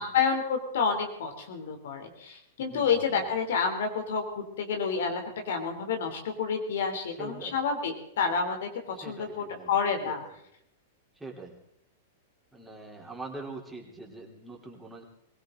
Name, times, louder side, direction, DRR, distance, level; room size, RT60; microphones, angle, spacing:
voice 1, 0.0-8.7 9.0-10.2, left 6 dB, 70° left, 5 dB, 3.2 m, -29 dB
voice 2, 2.6-3.2 7.1-7.6 8.9-9.8 10.1-10.3 11.2-11.6 12.5-15.0, right 2 dB, 5° right, -1 dB, 3.5 m, -43 dB
21.5 x 17.0 x 3.9 m, 0.77 s
hypercardioid pair, 115°, 0 cm